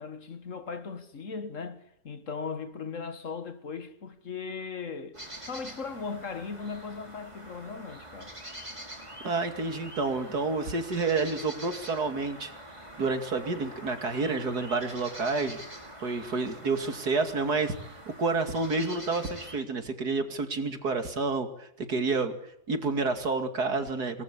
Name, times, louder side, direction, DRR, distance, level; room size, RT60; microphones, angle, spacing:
voice 1, 0.0-8.4, left 5 dB, 50° left, 1.8 m, -38 dB
sound 1, 5.1-19.6, right 1 dB, 20° right, 5.4 m, -45 dB
voice 2, 9.2-12.5 13.0-15.6 16.0-17.7 18.1-22.4 22.7-24.2, right 3 dB, 75° right, 3.0 m, -29 dB
27.0 x 19.5 x 8.5 m
omnidirectional pair, 1.7 m